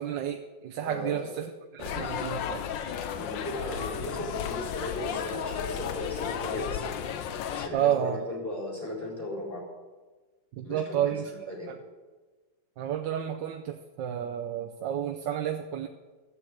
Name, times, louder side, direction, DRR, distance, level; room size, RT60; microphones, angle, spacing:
voice 1, 0.0-2.7 7.7-8.2 10.5-11.3 11.7-11.8 12.8-15.9, right 10 dB, 75° right, 4 dB, 1.4 m, -31 dB
voice 2, 0.8-1.3 3.1-6.9 7.5-9.7 10.6-11.7, left 1 dB, 10° left, -4 dB, 4.3 m, -36 dB
sound 1, 1.8-7.7, left 8 dB, 80° left, 1.5 m, -34 dB
14.0 x 7.5 x 7.9 m, 1.3 s
omnidirectional pair, 2.0 m